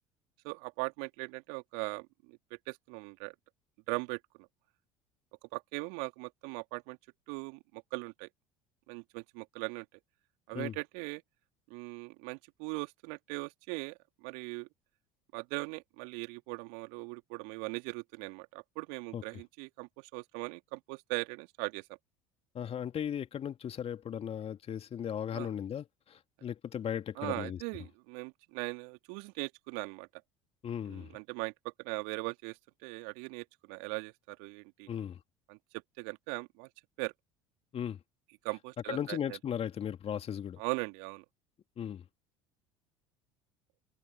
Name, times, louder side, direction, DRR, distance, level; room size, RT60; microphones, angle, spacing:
voice 1, 0.4-3.3 3.9-4.5 5.4-7.0 7.3-8.3 8.9-9.9 10.5-11.2 11.7-14.7 15.3-21.9 25.3-25.5 27.2-30.1 30.9-34.9 35.5-35.6 36.0-36.7 37.0-37.1 38.4-39.4 40.6-41.2, right 34 dB, 65° right, 2.8 m, -40 dB
voice 2, 22.5-27.6 30.6-31.2 34.9-35.2 37.7-38.0 38.9-40.6 41.8-42.0, left 9 dB, 40° left, 2.5 m, -37 dB
figure-of-eight pair, 65°, 16 cm